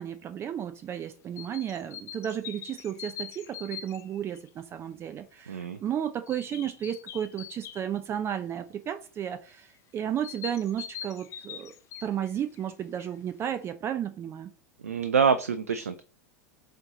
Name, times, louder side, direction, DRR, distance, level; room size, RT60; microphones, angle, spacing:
voice 1, 0.0-11.7 12.0-14.5, right 9 dB, 35° right, 0.6 m, -33 dB
sound 1, 1.4-4.5 6.3-7.9 10.2-12.6 13.0-13.1, left 8 dB, 40° left, 0.7 m, -42 dB
voice 2, 5.5-5.8 14.8-16.0, right 6 dB, 85° right, 0.5 m, -25 dB
7.8 x 3.1 x 3.9 m
hypercardioid pair, 90°, 8 cm